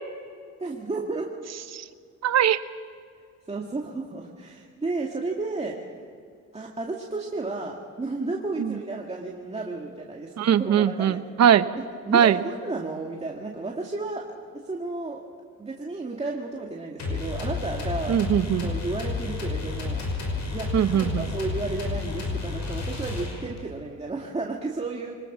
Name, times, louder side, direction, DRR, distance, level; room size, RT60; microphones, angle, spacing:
voice 1, 0.6-1.3 3.5-5.9 6.5-11.2 12.1-14.2 14.6-15.2 15.6-18.2 18.6-20.1 20.5-25.1, right 3 dB, 20° right, -1 dB, 2.1 m, -32 dB
voice 2, 2.2-2.6 8.6-8.8 10.4-11.7 12.1-12.4 18.1-18.7 20.7-21.3, right 9 dB, 60° right, 12 dB, 1.0 m, -21 dB
sound 1, 17.0-23.7, left 3 dB, 65° left, 5.9 m, -31 dB
25.0 x 20.0 x 6.2 m, 2.2 s
cardioid pair, 90°, 30 cm